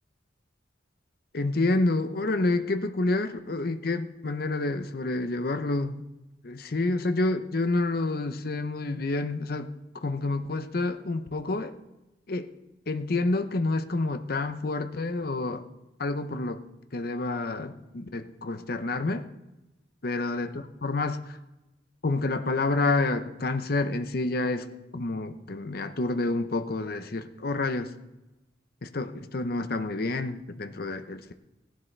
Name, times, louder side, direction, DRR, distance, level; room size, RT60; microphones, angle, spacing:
voice 1, 1.3-6.0 6.4-9.7 10.0-11.7 12.3-12.5 12.9-15.6 16.0-16.6 16.9-19.3 20.0-21.2 22.0-24.7 24.9-27.9 28.8-31.3, left 2 dB, 50° left, 9 dB, 0.7 m, -28 dB
16.5 x 11.0 x 3.3 m, 0.97 s
head